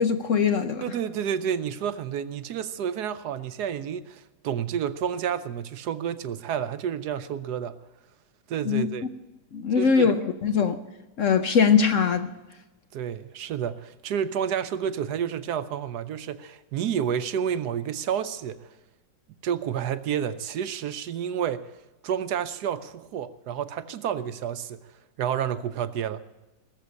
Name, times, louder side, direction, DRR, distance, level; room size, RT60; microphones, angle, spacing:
voice 1, 0.0-0.9 8.6-8.9 9.5-10.2 10.4-10.8 11.2-12.3, left 6 dB, 60° left, 0.9 m, -21 dB
voice 2, 0.8-7.7 8.5-9.1 9.8-10.1 12.9-18.6 19.4-21.6 22.0-24.8 25.2-26.2, right 8 dB, 75° right, 1.2 m, -30 dB
19.0 x 7.3 x 8.3 m
omnidirectional pair, 1.9 m